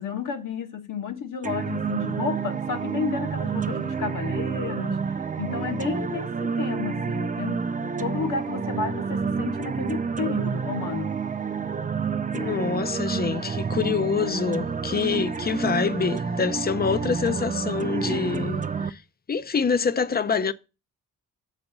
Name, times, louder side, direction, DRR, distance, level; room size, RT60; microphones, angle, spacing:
voice 1, 0.0-11.1, left 6 dB, 65° left, 1.4 m, -32 dB
sound 1, 1.4-18.9, right 5 dB, 25° right, 0.4 m, -29 dB
voice 2, 12.3-19.0 19.3-20.5, left 6 dB, 30° left, 0.5 m, -26 dB
7.0 x 4.2 x 6.6 m
cardioid pair, 95°, 34 cm